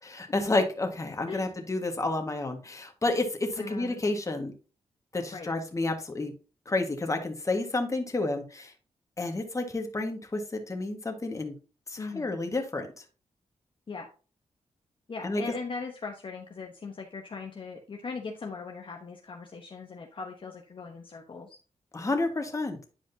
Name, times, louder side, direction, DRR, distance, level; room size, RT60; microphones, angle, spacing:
voice 1, 0.0-4.5 5.1-6.3 6.6-8.7 9.2-11.6 11.9-13.0 15.2-15.4 21.9-22.8, left 2 dB, 25° left, 4 dB, 1.6 m, -30 dB
voice 2, 3.6-4.0 5.3-5.5 12.0-12.3 13.9-14.1 15.1-21.6, left 4 dB, 45° left, 2 dB, 1.0 m, -39 dB
10.0 x 5.0 x 2.8 m, 0.35 s
wide cardioid pair, 100°, 12 cm